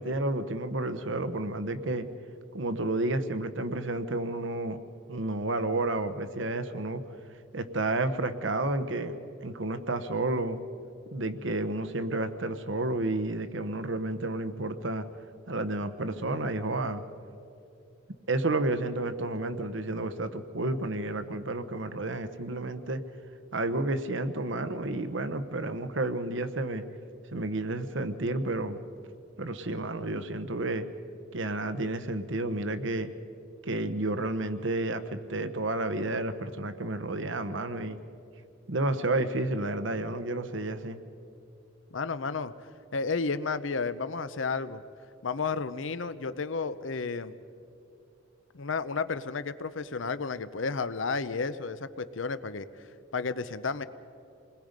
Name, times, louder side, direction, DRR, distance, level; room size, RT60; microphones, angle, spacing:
voice 1, 0.0-2.1 2.5-4.8 5.1-7.0 7.5-10.6 11.1-15.1 15.5-17.0 18.3-23.0 23.5-26.8 27.3-28.8 29.4-30.9 31.3-33.1 33.6-38.0 38.7-41.0, right 2 dB, 70° right, 10 dB, 1.1 m, -31 dB
voice 2, 41.9-42.5 42.9-44.8 45.2-47.3 48.5-52.7 53.1-53.8, left 4 dB, 75° left, 13 dB, 0.8 m, -32 dB
28.5 x 21.0 x 5.2 m, 2.7 s
head